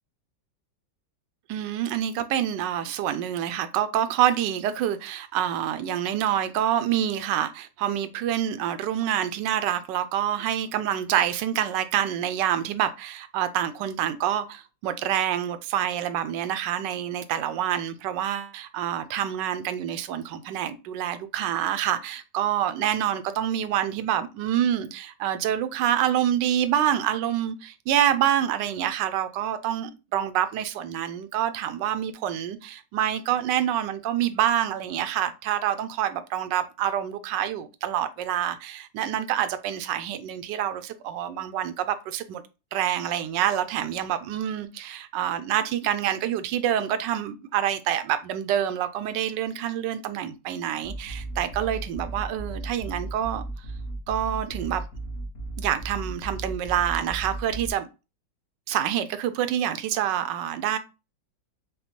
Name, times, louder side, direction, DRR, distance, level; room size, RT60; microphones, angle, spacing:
voice 1, 1.5-42.4 42.7-53.4 54.1-54.8 55.6-57.9 58.7-60.8, right 10 dB, 75° right, 1.1 m, -27 dB
sound 1, 50.8-57.7, right 2 dB, 50° left, 0.8 m, -35 dB
6.5 x 2.2 x 3.0 m
omnidirectional pair, 2.1 m